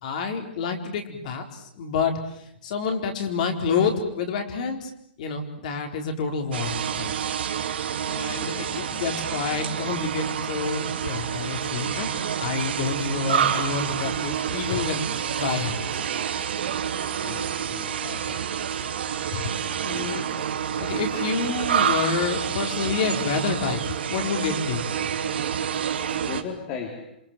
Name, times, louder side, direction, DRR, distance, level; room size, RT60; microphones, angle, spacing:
voice 1, 0.0-4.9 5.2-7.1 8.1-12.1 12.4-15.1 15.3-16.0 18.0-18.4 19.3-19.4 19.8-20.2 20.7-23.8 24.1-24.9, left 5 dB, 45° left, 4 dB, 4.4 m, -28 dB
sound 1, 6.5-26.4, right 8 dB, 70° right, 3.0 m, -28 dB
voice 2, 8.0-9.3 17.2-18.0 20.3-20.5 26.2-27.2, left 6 dB, 30° left, 2 dB, 3.1 m, -38 dB
27.5 x 24.5 x 7.7 m, 0.71 s
hypercardioid pair, 165°, 6 cm